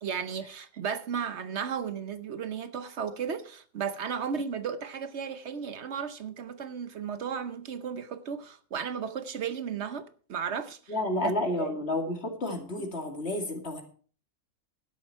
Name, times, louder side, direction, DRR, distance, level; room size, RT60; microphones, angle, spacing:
voice 1, 0.0-10.9 11.2-11.3 11.6-11.7, right 7 dB, 65° right, 1.0 m, -34 dB
voice 2, 10.9-13.8, left 1 dB, 55° left, 2.7 m, -30 dB
12.5 x 10.5 x 4.3 m
omnidirectional pair, 1.3 m